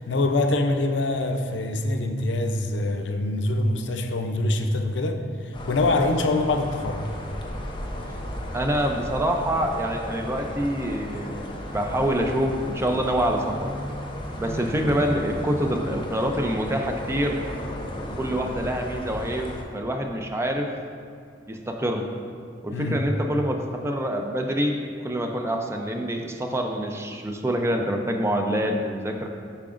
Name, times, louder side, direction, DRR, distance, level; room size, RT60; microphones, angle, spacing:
voice 1, 0.0-7.1 22.7-23.0, left 2 dB, 90° left, 6 dB, 0.5 m, -24 dB
sound 1, 5.5-19.6, left 1 dB, 30° left, 0.7 m, -35 dB
voice 2, 8.5-11.5 11.7-13.7 14.4-17.4 18.2-20.7 21.5-22.0 22.6-23.6 23.8-24.8 25.0-29.3, equal, 15° right, 3 dB, 0.5 m, -26 dB
8.5 x 5.8 x 2.5 m, 2.2 s
head